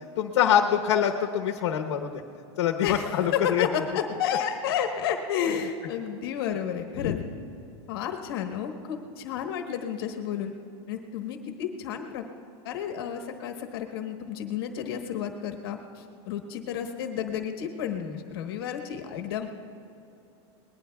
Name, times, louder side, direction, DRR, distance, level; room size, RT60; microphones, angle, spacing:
voice 1, 0.2-2.1 2.6-3.7 7.0-7.2, left 9 dB, 75° left, 3 dB, 1.0 m, -24 dB
voice 2, 2.8-7.2 7.9-10.5 10.9-12.2 12.6-19.5, left 8 dB, 55° left, 5 dB, 1.2 m, -31 dB
26.5 x 20.0 x 2.3 m, 2.8 s
supercardioid pair, 170°, 15 cm